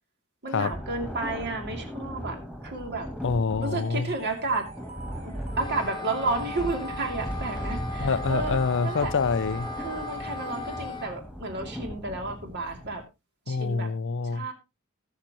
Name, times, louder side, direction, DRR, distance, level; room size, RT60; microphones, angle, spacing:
voice 1, 0.4-2.4 2.6-3.1 3.6-4.7 5.2-9.1 9.8-13.0 13.5-13.9 14.2-14.5, right 3 dB, 50° right, 2.6 m, -32 dB
sound 1, 0.7-13.0, equal, 5° right, 2.4 m, -37 dB
voice 2, 3.2-4.1 8.0-9.7 13.5-14.5, left 4 dB, 55° left, 0.5 m, -26 dB
sound 2, 3.6-11.4, right 4 dB, 30° right, 1.8 m, -48 dB
Wind instrument woodwind instrument, 5.5-11.2, left 2 dB, 20° left, 1.1 m, -38 dB
19.5 x 6.6 x 2.9 m
head